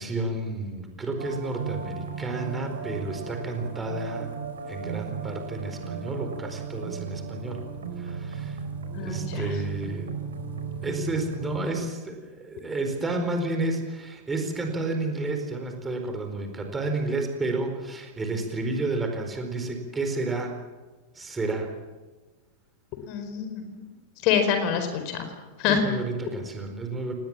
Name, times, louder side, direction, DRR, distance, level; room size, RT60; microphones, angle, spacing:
voice 1, 0.0-4.3 4.7-7.6 8.0-8.6 9.0-10.1 10.8-20.6 21.1-21.7 25.6-27.2, right 2 dB, 15° right, 4 dB, 4.4 m, -31 dB
sound 1, 1.2-11.6, right 5 dB, 65° right, 4.6 m, -35 dB
voice 2, 8.9-9.5 23.0-23.8 24.2-25.3 25.6-25.8, left 8 dB, 45° left, 7 dB, 4.5 m, -26 dB
27.5 x 19.5 x 7.4 m, 1.3 s
figure-of-eight pair, 90°, 0 cm